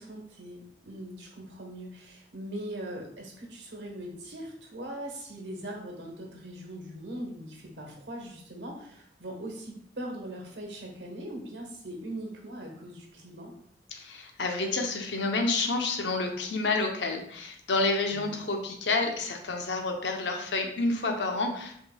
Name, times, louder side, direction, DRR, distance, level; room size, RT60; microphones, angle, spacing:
voice 1, 0.0-13.5 18.0-18.4, right 1 dB, 90° right, 0 dB, 1.2 m, -40 dB
voice 2, 13.9-21.8, left 3 dB, 85° left, 4 dB, 0.7 m, -29 dB
5.3 x 3.7 x 2.2 m, 0.67 s
head